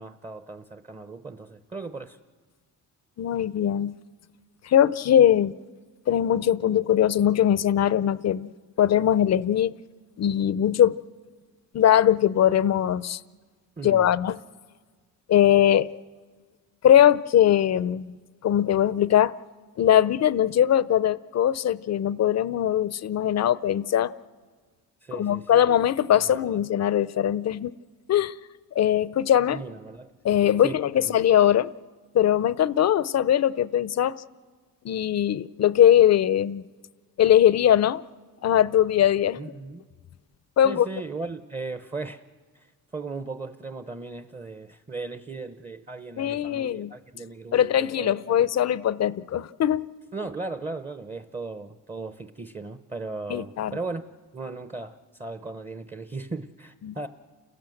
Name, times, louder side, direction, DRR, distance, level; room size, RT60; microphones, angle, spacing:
voice 1, 0.0-2.2 13.8-14.1 25.0-25.7 26.2-26.6 29.5-31.2 39.4-39.8 40.6-42.2 42.5-42.7 42.9-48.5 50.1-54.0 54.3-57.1, right 3 dB, 20° right, 0.8 m, -37 dB
voice 2, 3.2-3.9 4.6-5.6 6.1-8.5 8.8-9.7 10.2-11.0 11.7-13.2 13.8-14.4 15.3-15.9 16.8-18.2 18.4-19.3 19.8-24.1 25.1-27.7 28.1-28.3 28.7-29.6 30.2-31.7 32.1-34.2 34.8-36.6 37.2-38.0 38.4-39.4 40.6-40.9 46.2-46.9 47.5-49.9 53.3-53.7 56.8-57.0, left 10 dB, 45° left, 0.6 m, -21 dB
29.0 x 16.0 x 7.8 m
cardioid pair, 105°, 35 cm